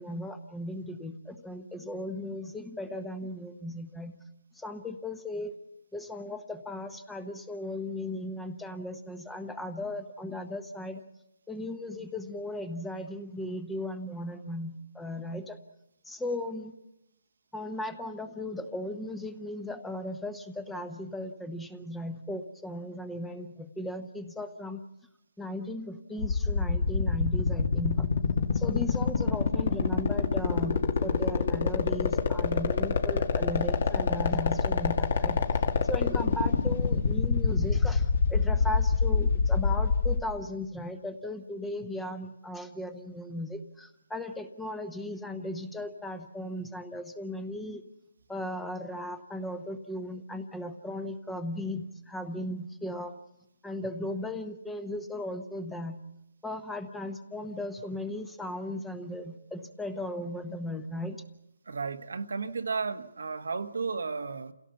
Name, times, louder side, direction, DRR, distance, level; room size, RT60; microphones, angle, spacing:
voice 1, 0.0-4.1 4.6-5.6 5.9-11.0 11.5-15.6 16.0-16.7 17.5-24.8 25.4-28.1 28.5-35.4 35.9-47.8 48.3-53.2 53.6-56.0 56.4-61.2, left 1 dB, 5° left, 1.0 m, -37 dB
sound 1, 26.2-40.2, left 4 dB, 55° left, 2.2 m, -24 dB
voice 2, 61.7-64.5, right 4 dB, 80° right, 1.3 m, -33 dB
28.0 x 17.0 x 7.0 m
hypercardioid pair, 160°, 0 cm